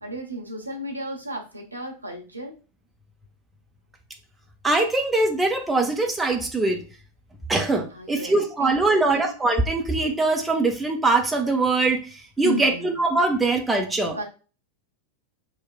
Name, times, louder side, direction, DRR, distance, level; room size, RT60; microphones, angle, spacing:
voice 1, 0.0-2.5 7.9-9.3 12.4-12.9 14.1-14.2, equal, 85° right, 1 dB, 0.7 m, -34 dB
voice 2, 4.6-6.8 7.5-14.2, right 2 dB, 10° right, 3 dB, 0.5 m, -22 dB
3.1 x 2.1 x 2.3 m, 0.34 s
figure-of-eight pair, 90°, 0 cm